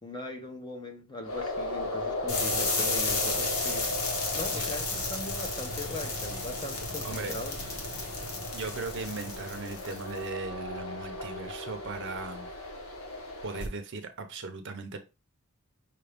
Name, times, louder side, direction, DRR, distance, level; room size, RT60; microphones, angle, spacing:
voice 1, 0.0-3.9 4.3-7.6, left 2 dB, 20° left, 0.7 m, -40 dB
sound 1, 1.2-13.7, left 1 dB, 75° left, 1.2 m, -37 dB
sound 2, 2.3-10.2, left 3 dB, 90° left, 1.4 m, -33 dB
voice 2, 7.0-7.3 8.5-12.5 13.4-15.0, right 3 dB, 55° right, 0.7 m, -38 dB
5.5 x 2.5 x 3.4 m
head